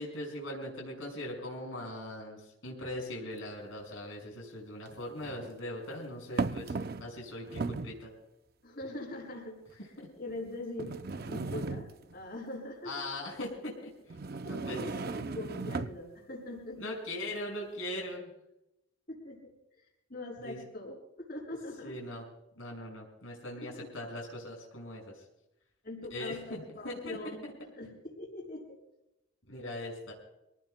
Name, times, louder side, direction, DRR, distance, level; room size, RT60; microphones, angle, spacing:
voice 1, 0.0-8.1 10.0-10.1 12.8-13.9 14.4-14.8 16.8-18.3 20.4-20.6 21.8-22.2 22.6-25.2 26.1-27.7 29.5-30.1, left 1 dB, 80° left, -1 dB, 5.7 m, -40 dB
sound 1, 3.4-3.5 4.9-5.5 6.4-7.2 7.5-8.0 8.8-8.9 9.7-9.8 10.8-12.2 14.1-16.0, right 3 dB, 50° right, 0.6 m, -36 dB
voice 2, 8.6-9.6 10.2-13.0 14.7-16.9 19.1-19.5 20.1-21.9 23.6-24.0 25.8-27.5 27.8-28.8, left 1 dB, 45° left, -1 dB, 6.2 m, -42 dB
26.0 x 19.0 x 2.2 m, 0.88 s
head